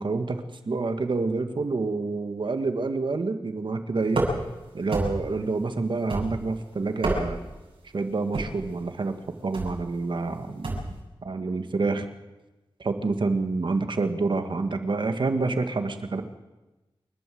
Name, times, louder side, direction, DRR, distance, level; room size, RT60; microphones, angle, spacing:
voice 1, 0.0-4.3 4.7-7.4 7.9-9.1 9.4-10.8 11.2-12.1 12.8-16.2, right 3 dB, 60° right, 7 dB, 1.8 m, -28 dB
sound 1, 4.1-4.6 4.9-5.4 6.1-6.5 6.9-7.5 8.3-8.7 9.5-9.8 10.6-11.0, right 2 dB, 75° right, 7.7 m, -29 dB
28.5 x 12.0 x 7.8 m, 1.1 s
wide cardioid pair, 100°, 9 cm